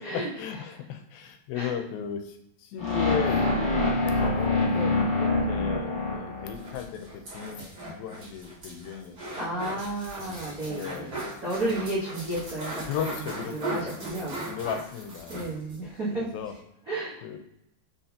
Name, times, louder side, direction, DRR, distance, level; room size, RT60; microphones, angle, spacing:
voice 1, 0.0-4.8 5.2-9.2 9.5-9.8 10.7-11.2 12.8-15.6 16.1-16.5 17.2-17.4, left 8 dB, 85° left, 6 dB, 2.6 m, -36 dB
sound 1, 2.8-6.9, left 2 dB, 20° left, 1.3 m, -25 dB
sound 2, 6.5-15.8 16.1-16.2 16.4-16.6, right 2 dB, 35° right, 2.3 m, -38 dB
voice 2, 9.4-13.1 13.5-14.4 15.3-16.3 16.9-17.2, right 1 dB, 90° right, -9 dB, 0.7 m, -32 dB
6.4 x 5.7 x 2.9 m, 0.81 s
omnidirectional pair, 4.1 m